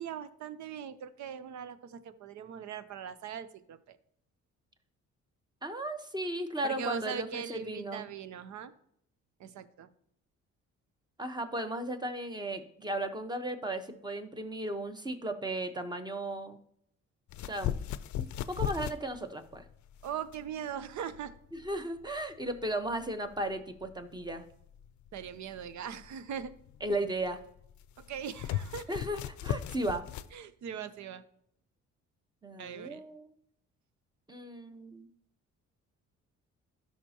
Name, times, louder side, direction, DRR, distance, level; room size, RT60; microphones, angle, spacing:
voice 1, 0.0-4.0 6.6-8.7 9.4-9.9 20.0-21.3 25.1-26.5 28.1-28.9 30.3-31.2 32.6-33.0, right 8 dB, 70° right, 13 dB, 0.7 m, -40 dB
voice 2, 5.6-8.1 11.2-16.6 17.4-17.8 18.2-19.6 21.5-24.4 26.8-27.4 28.9-30.0 32.4-33.3 34.3-35.1, right 1 dB, 15° right, 8 dB, 1.0 m, -35 dB
sound 1, 17.3-30.3, left 11 dB, 70° left, 0.5 m, -39 dB
13.0 x 5.8 x 2.9 m, 0.72 s
cardioid pair, 90°, 30 cm